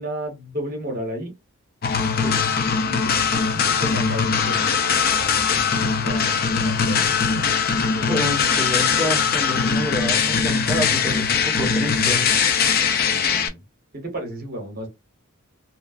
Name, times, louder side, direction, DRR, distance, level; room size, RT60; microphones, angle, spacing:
voice 1, 0.0-1.3 2.8-6.4 6.6-7.5 7.7-8.1 12.9-13.6 13.9-14.9, equal, 45° right, 1.0 m, -34 dB
sound 1, 1.8-13.5, left 6 dB, 45° left, 0.4 m, -21 dB
voice 2, 8.1-12.3, equal, ahead, 1.0 m, -28 dB
3.0 x 2.2 x 2.3 m
head